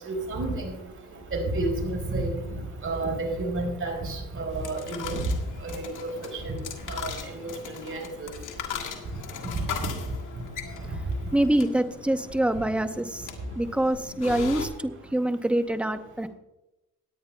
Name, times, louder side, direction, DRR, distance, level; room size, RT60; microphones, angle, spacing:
voice 1, 0.1-0.7 1.3-2.4 2.8-5.2 5.6-5.9 6.4-6.6 6.9-7.1 7.4-8.3, right 2 dB, 40° right, 4.4 m, -30 dB
sound 1, 4.3-14.7, left 7 dB, 70° left, 1.8 m, -39 dB
voice 2, 11.3-13.3 13.6-16.3, right 1 dB, 5° right, 0.7 m, -25 dB
18.0 x 10.0 x 2.3 m
cardioid pair, 100°, 32 cm